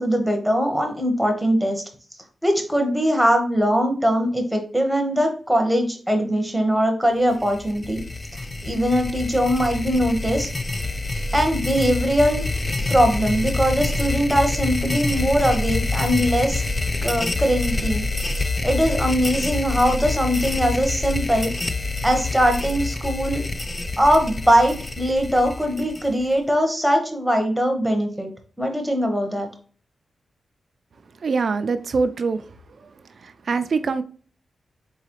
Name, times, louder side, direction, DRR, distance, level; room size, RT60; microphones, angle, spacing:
voice 1, 0.0-1.8 2.4-8.0 8.3-10.5 11.3-12.5 12.9-16.6 17.0-18.0 18.6-21.5 22.0-23.4 24.0-28.3 28.6-29.5, equal, ahead, 4 dB, 0.9 m, -21 dB
sound 1, 7.3-26.4, left 3 dB, 25° left, 0.3 m, -27 dB
voice 2, 31.2-32.4 33.2-34.0, right 4 dB, 55° right, 11 dB, 0.4 m, -23 dB
4.0 x 3.8 x 2.9 m, 0.42 s
wide cardioid pair, 125°, 0 cm